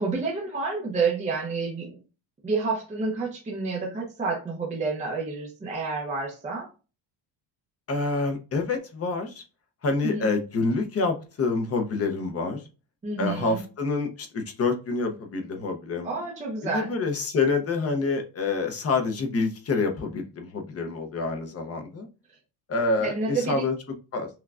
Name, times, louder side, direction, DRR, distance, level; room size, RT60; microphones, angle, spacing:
voice 1, 0.0-2.0 2.4-6.7 10.0-10.3 13.0-13.6 16.0-16.9 23.0-23.6, right 4 dB, 15° right, -2 dB, 0.5 m, -29 dB
voice 2, 7.9-9.4 9.8-12.6 13.2-16.1 16.7-22.1 22.7-23.7 24.1-24.3, left 3 dB, 30° left, 5 dB, 0.6 m, -27 dB
5.8 x 2.2 x 2.3 m, 0.32 s
cardioid pair, 175°, 47 cm